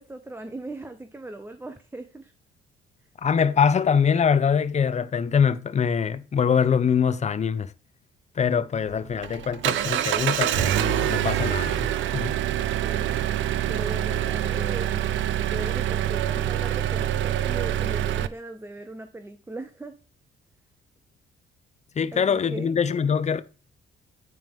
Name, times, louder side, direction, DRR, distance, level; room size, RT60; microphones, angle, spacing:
voice 1, 0.0-2.3 12.8-13.2 13.7-15.0 15.5-20.0 22.1-22.8, right 2 dB, 10° right, 0.7 m, -38 dB
voice 2, 3.2-7.7 8.4-12.4 22.0-23.4, left 7 dB, 35° left, 0.7 m, -23 dB
Engine, 8.7-18.3, right 12 dB, 75° right, 0.6 m, -25 dB
9.2 x 4.7 x 3.5 m
cardioid pair, 90°, 20 cm